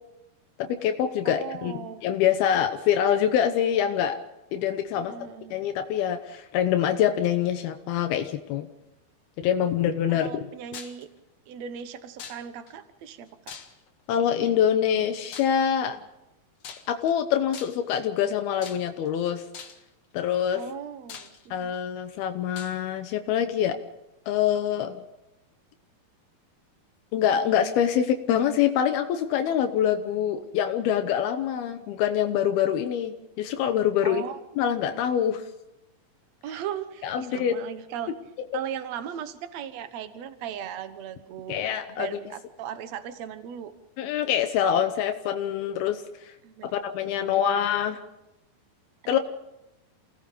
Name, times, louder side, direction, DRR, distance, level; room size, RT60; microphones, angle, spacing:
voice 1, 0.6-1.7 2.0-4.2 4.5-5.1 5.5-8.7 9.4-10.5 14.1-16.0 16.9-19.4 20.1-20.6 21.5-23.8 24.3-25.0 27.1-34.3 34.6-35.4 37.0-37.6 41.5-42.1 44.0-46.3 46.7-48.0 49.1-49.2, left 9 dB, 80° left, 7 dB, 2.8 m, -25 dB
voice 2, 1.2-2.0 4.9-5.6 10.1-11.1 11.5-13.4 20.5-21.8 34.0-34.4 36.4-38.1 38.5-41.6 41.9-43.7 46.4-47.7 49.1-49.2, right 9 dB, 60° right, 10 dB, 1.9 m, -38 dB
sound 1, 10.7-11.0 12.2-12.7 13.5-14.0 15.3-15.6 16.6-17.1 17.5-17.9 18.6-19.1 19.5-19.9 20.6-20.7 21.1-21.8 22.6-22.8, left 6 dB, 55° left, 2.1 m, -42 dB
28.5 x 18.0 x 5.2 m, 0.92 s
omnidirectional pair, 4.4 m